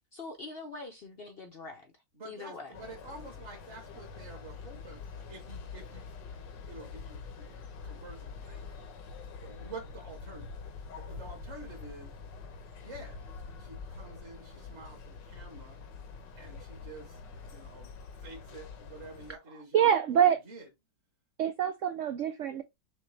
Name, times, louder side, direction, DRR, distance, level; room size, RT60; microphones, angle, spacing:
voice 1, 0.1-1.9 2.2-2.7, left 3 dB, 55° left, 0.6 m, -43 dB
voice 2, 2.2-6.0 6.3-8.6 9.4-10.6 10.9-12.1 12.8-13.2 13.6-15.8 16.3-17.2 17.5-17.9 18.2-20.7, right 2 dB, 40° right, 1.5 m, -48 dB
sound 1, 2.7-19.4, left 4 dB, 85° left, 1.7 m, -45 dB
voice 3, 19.7-20.4 21.4-22.6, right 9 dB, 80° right, 0.6 m, -25 dB
6.3 x 2.2 x 3.2 m
omnidirectional pair, 1.9 m